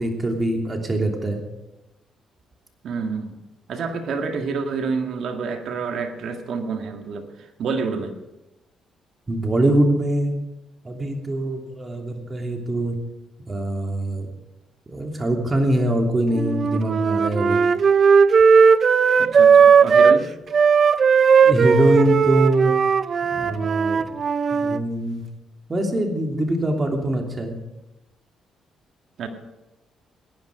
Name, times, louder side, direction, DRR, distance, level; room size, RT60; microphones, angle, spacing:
voice 1, 0.0-1.4 9.3-10.3 10.8-13.0 13.5-14.3 14.9-17.6 21.4-22.7 23.3-24.0 24.5-25.2 25.7-27.6, right 1 dB, 30° right, 3 dB, 3.0 m, -23 dB
voice 2, 2.8-3.4 3.7-8.1 19.2-20.3 29.2-29.3, right 5 dB, 65° right, 5 dB, 2.0 m, -28 dB
Wind instrument woodwind instrument, 16.3-20.2 20.5-24.8, right 6 dB, 50° right, 0.6 m, -16 dB
17.5 x 10.5 x 5.2 m, 0.99 s
cardioid pair, 90°, 0 cm